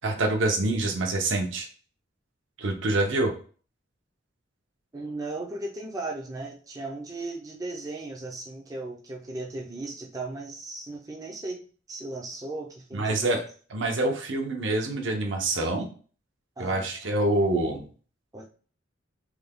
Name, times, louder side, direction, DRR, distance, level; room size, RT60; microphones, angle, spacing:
voice 1, 0.0-1.7 2.6-3.3 12.9-13.4 13.7-15.9 16.6-17.8, right 2 dB, 70° right, 3 dB, 0.8 m, -26 dB
voice 2, 4.9-13.4 16.6-16.9 18.3-18.5, right 2 dB, 20° right, -2 dB, 0.5 m, -36 dB
3.4 x 2.2 x 3.5 m, 0.41 s
head